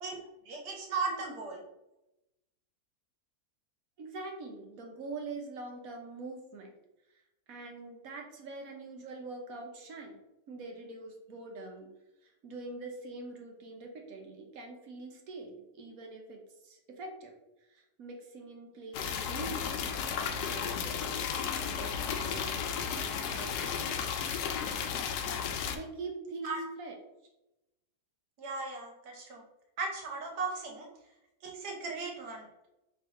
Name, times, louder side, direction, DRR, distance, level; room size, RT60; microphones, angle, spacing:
voice 1, 0.0-1.6 26.4-26.6 28.4-29.4 29.8-30.9 31.4-32.5, right 4 dB, 80° right, 1 dB, 1.5 m, -37 dB
voice 2, 4.0-6.7 7.1-7.2 7.5-10.2 10.5-11.9 12.2-17.3 17.6-19.8 20.2-24.1 25.7-27.0, right 3 dB, 65° right, 2 dB, 1.3 m, -44 dB
sound 1, 18.9-25.8, left 7 dB, 80° left, 1.1 m, -34 dB
3.9 x 2.8 x 4.5 m, 0.93 s
omnidirectional pair, 1.7 m